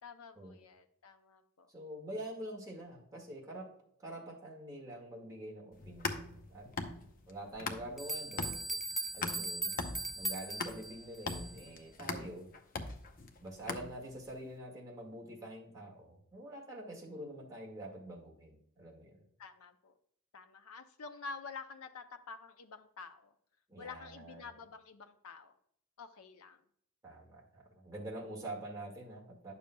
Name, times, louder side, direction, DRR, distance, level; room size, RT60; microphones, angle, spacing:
voice 1, 0.0-1.7 6.9-7.1 19.4-19.9 20.3-23.3 23.8-25.6 26.0-26.6, left 4 dB, 85° left, 8 dB, 0.6 m, -49 dB
voice 2, 1.7-3.7 4.0-6.7 7.3-8.8 9.1-9.8 10.1-12.5 13.4-19.2 23.7-24.5 27.0-29.5, right 1 dB, 15° right, -2 dB, 1.7 m, -46 dB
sound 1, 5.7-8.1 8.4-14.3, left 3 dB, 40° left, 0.7 m, -41 dB
sound 2, 7.5-7.6 8.0-11.7, right 2 dB, ahead, 0.5 m, -39 dB
10.0 x 6.9 x 2.2 m, 0.68 s
head